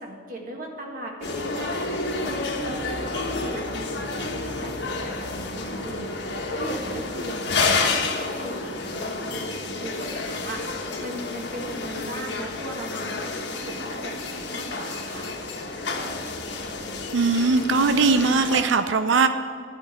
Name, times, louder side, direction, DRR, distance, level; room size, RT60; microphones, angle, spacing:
voice 1, 0.0-15.3, right 1 dB, 45° right, 0 dB, 1.7 m, -38 dB
sound 1, 1.2-18.6, left 3 dB, 70° left, 1.2 m, -30 dB
voice 2, 17.1-19.3, right 4 dB, 80° right, 9 dB, 0.5 m, -20 dB
11.0 x 5.2 x 8.5 m, 2.1 s
head